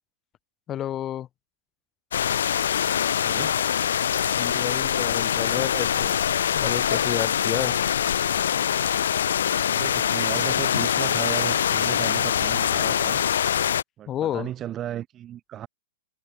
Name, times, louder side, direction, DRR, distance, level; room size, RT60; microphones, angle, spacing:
voice 1, 0.7-1.3 4.4-6.1 6.5-7.7 14.1-14.5, left 11 dB, 25° left, 3.2 m, -30 dB
sound 1, 2.1-13.8, left 9 dB, 80° left, 1.0 m, -24 dB
voice 2, 3.2-3.5 5.4-5.9 9.7-13.2 14.0-15.7, right 11 dB, 25° right, 1.1 m, -35 dB
hypercardioid pair, 130°, 0 cm